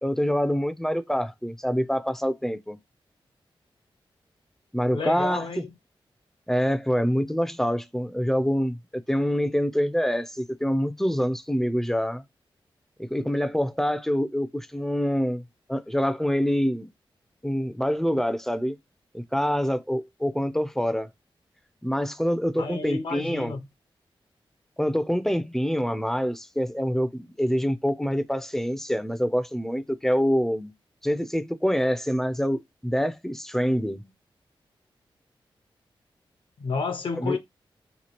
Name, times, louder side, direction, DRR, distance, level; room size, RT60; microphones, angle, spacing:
voice 1, 0.0-2.8 4.7-5.6 6.5-8.8 9.1-12.2 13.0-15.4 15.7-16.9 17.4-18.8 19.1-21.1 21.8-23.5 24.8-30.7 31.0-34.1 37.2-37.4, equal, 5° left, 0.3 m, -26 dB
voice 2, 4.9-5.7 22.6-23.6 36.6-37.4, left 4 dB, 60° left, 0.5 m, -31 dB
2.9 x 2.4 x 2.9 m
cardioid pair, 70°, 9 cm